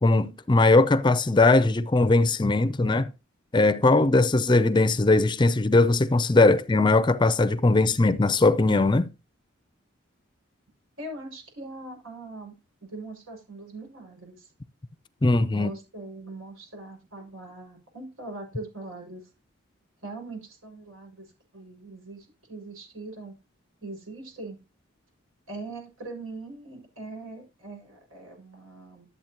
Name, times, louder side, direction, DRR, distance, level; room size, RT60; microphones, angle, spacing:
voice 1, 0.0-3.1 3.5-9.1 15.2-15.7, left 2 dB, 20° left, 0.5 m, -20 dB
voice 2, 11.0-12.5 12.8-14.5 15.5-19.2 20.0-23.3 23.8-24.6 25.5-29.1, right 2 dB, 85° right, 5.9 m, -41 dB
12.0 x 8.4 x 2.9 m
head